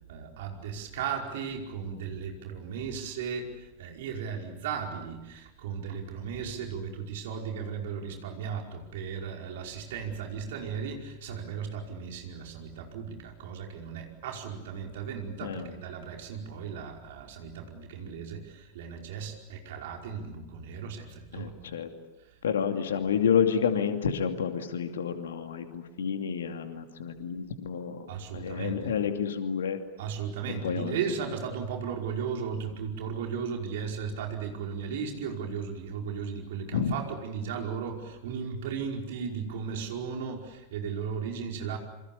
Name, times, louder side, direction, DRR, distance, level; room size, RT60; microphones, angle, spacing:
voice 1, 0.1-21.5 28.1-28.9 30.0-41.8, right 6 dB, 55° right, 1 dB, 5.1 m, -36 dB
voice 2, 15.4-15.7 21.3-21.9 22.4-28.0 28.3-29.8 30.6-31.0 36.7-36.9, left 7 dB, 65° left, 6 dB, 2.6 m, -29 dB
28.0 x 26.5 x 7.1 m, 1.0 s
figure-of-eight pair, 90°, 0 cm